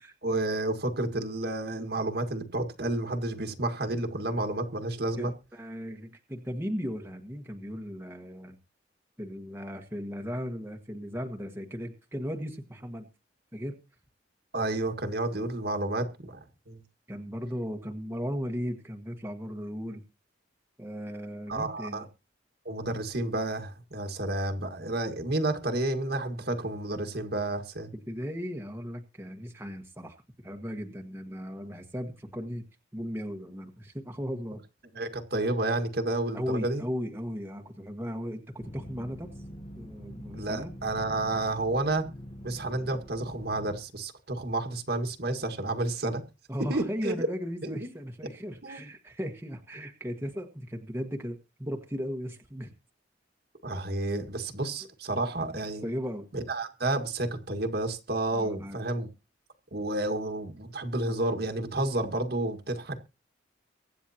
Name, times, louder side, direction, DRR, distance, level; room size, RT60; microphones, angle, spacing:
voice 1, 0.2-5.3 14.5-16.8 21.5-22.0 22.7-27.9 34.9-36.8 40.3-42.0 42.4-46.2 46.7-47.3 47.6-47.9 48.6-48.8 53.6-55.8 56.3-59.1 59.7-63.0, right 2 dB, 55° right, 6 dB, 1.8 m, -30 dB
voice 2, 5.2-8.6 9.2-13.1 13.5-13.8 17.1-20.0 20.8-22.1 28.1-30.1 30.4-32.6 32.9-34.6 36.3-39.3 39.8-40.7 46.5-52.7 55.8-56.3 58.3-58.8, equal, 15° right, 2 dB, 1.5 m, -36 dB
sound 1, 38.6-43.8, equal, 35° left, 1.2 m, -44 dB
23.5 x 9.3 x 2.9 m, 0.30 s
head